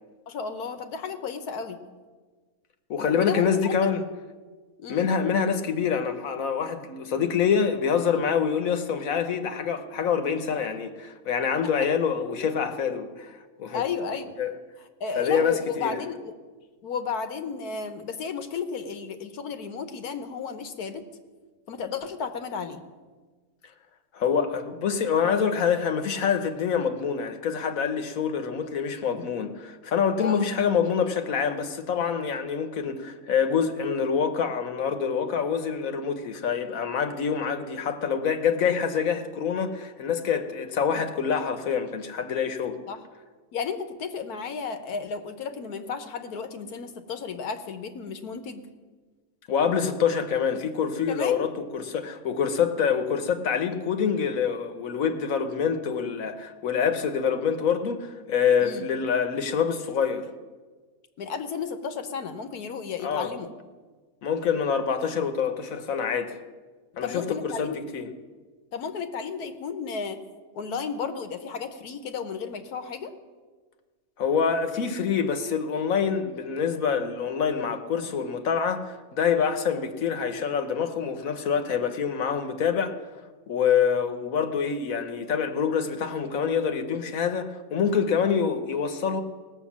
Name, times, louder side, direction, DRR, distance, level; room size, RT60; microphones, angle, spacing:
voice 1, 0.3-1.8 3.0-3.7 4.8-5.1 13.7-14.4 15.0-16.4 16.8-21.0 21.7-22.8 30.2-30.5 42.9-43.0 43.5-48.6 51.1-51.4 58.6-58.9 61.2-63.5 67.0-67.8 68.7-70.2 70.5-73.1, left 5 dB, 90° left, 1.5 m, -33 dB
voice 2, 2.9-4.0 4.9-13.3 13.6-13.8 14.4-14.5 15.2-16.0 24.1-42.8 49.5-60.3 63.0-63.3 64.2-66.4 67.0-68.1 74.2-83.0 83.5-89.2, left 6 dB, 70° left, 1.3 m, -26 dB
18.0 x 6.4 x 7.3 m
omnidirectional pair, 1.6 m